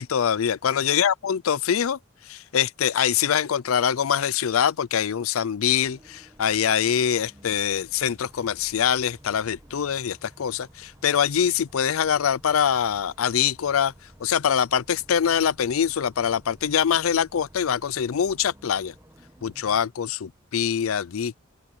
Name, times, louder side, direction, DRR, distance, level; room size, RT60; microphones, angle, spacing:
voice 1, 0.0-13.9 14.2-18.9 19.4-21.4, left 8 dB, 85° left, 0.5 m, -24 dB
Bus, 5.8-19.9, right 1 dB, 15° right, 1.2 m, -53 dB
open air
head